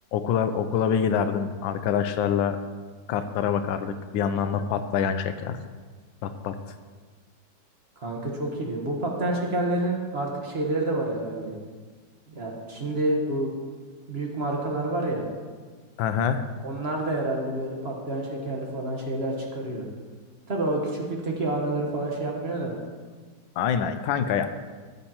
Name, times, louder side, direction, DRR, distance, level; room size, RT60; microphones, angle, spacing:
voice 1, 0.1-2.6 3.1-5.6 6.2-6.7 16.0-16.5 23.6-24.5, left 7 dB, 85° left, 10 dB, 1.3 m, -26 dB
voice 2, 8.0-11.5 12.3-13.5 14.1-15.2 16.6-19.8 20.5-22.7, right 2 dB, 35° right, -1 dB, 1.3 m, -28 dB
13.0 x 8.3 x 2.9 m, 1.5 s
omnidirectional pair, 2.1 m